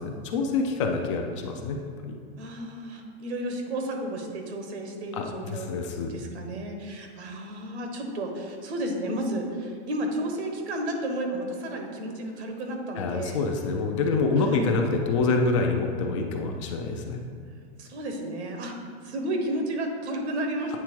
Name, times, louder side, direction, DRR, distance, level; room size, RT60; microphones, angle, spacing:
voice 1, 0.0-2.1 5.1-6.1 13.0-17.2, left 4 dB, 30° left, 3 dB, 0.4 m, -26 dB
voice 2, 2.4-5.7 6.1-13.4 14.4-14.7 17.8-18.7 19.0-20.8, right 1 dB, 85° right, 3 dB, 1.3 m, -32 dB
8.5 x 3.4 x 4.5 m, 2.2 s
supercardioid pair, 165°, 32 cm